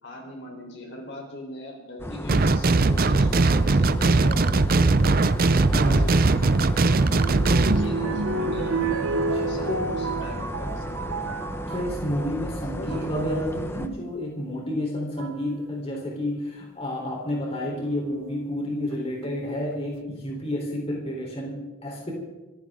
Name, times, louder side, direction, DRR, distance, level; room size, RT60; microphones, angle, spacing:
voice 1, 0.0-5.3 5.7-6.8 7.7-8.7 9.5-11.2 12.7-13.1, left 1 dB, 55° left, 1 dB, 3.9 m, -40 dB
sound 1, 2.0-13.9, left 1 dB, 10° left, 0.8 m, -34 dB
sound 2, 2.3-7.8, right 3 dB, 40° right, 0.6 m, -20 dB
voice 2, 5.7-6.0 9.3-9.8 11.7-22.1, left 1 dB, 25° left, -1 dB, 3.8 m, -30 dB
sound 3, 6.3-12.0 12.7-13.1 14.4-14.5 15.2-15.5 17.6-18.3 18.9-19.0 19.2-19.3, right 3 dB, 75° right, 1.0 m, -30 dB
25.5 x 15.0 x 3.8 m, 1.1 s
head